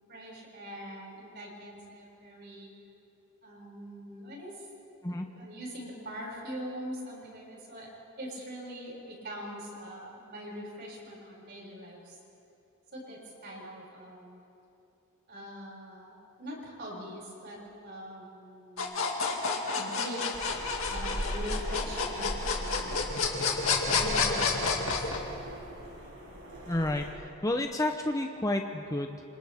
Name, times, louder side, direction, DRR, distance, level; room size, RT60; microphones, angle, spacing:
voice 1, 0.1-2.7 3.4-4.7 5.1-7.9 8.2-12.2 12.9-14.4 15.3-19.1 19.7-20.5 20.9-23.3 23.9-25.3, equal, 50° right, -4 dB, 6.3 m, -43 dB
sound 1, 18.8-25.2, left 4 dB, 75° left, 2.3 m, -29 dB
sound 2, 20.3-27.1, equal, 80° right, 5.8 m, -39 dB
voice 2, 26.7-29.2, left 1 dB, 15° left, 4 dB, 0.7 m, -30 dB
28.5 x 26.0 x 3.6 m, 2.8 s
head